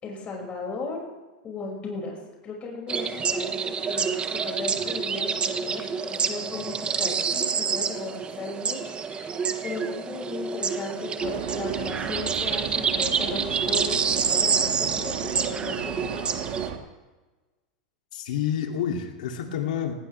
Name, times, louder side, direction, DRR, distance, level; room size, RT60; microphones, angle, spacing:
voice 1, 0.0-1.0 1.4-16.3, left 3 dB, 30° left, -1 dB, 6.1 m, -36 dB
sound 1, 2.9-16.7, right 6 dB, 25° right, 1.2 m, -28 dB
sound 2, 11.2-16.8, right 9 dB, 65° right, 2.0 m, -35 dB
voice 2, 18.1-19.9, left 8 dB, 75° left, 3 dB, 2.6 m, -28 dB
19.5 x 17.5 x 3.4 m, 1.2 s
hypercardioid pair, 110°, 4 cm